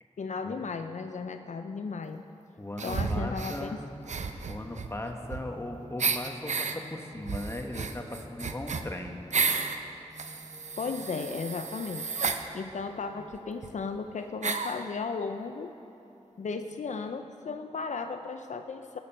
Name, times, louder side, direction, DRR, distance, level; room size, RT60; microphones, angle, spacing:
voice 1, 0.2-2.2 2.8-3.8 10.8-12.1 12.5-15.7 16.4-19.0, left 4 dB, 75° left, 7 dB, 0.5 m, -35 dB
voice 2, 2.6-3.8 4.4-9.2, left 1 dB, 20° left, 3 dB, 1.4 m, -38 dB
sound 1, 2.8-3.6 4.0-5.6 6.0-6.7 7.2-9.8 10.2-12.4 13.3-13.4 13.6-13.7 14.4-14.8, right 5 dB, 70° right, 0.7 m, -32 dB
sound 2, 3.0-13.3, left 2 dB, 40° left, 3.2 m, -52 dB
18.0 x 6.8 x 5.6 m, 2.9 s
cardioid pair, 55°, 12 cm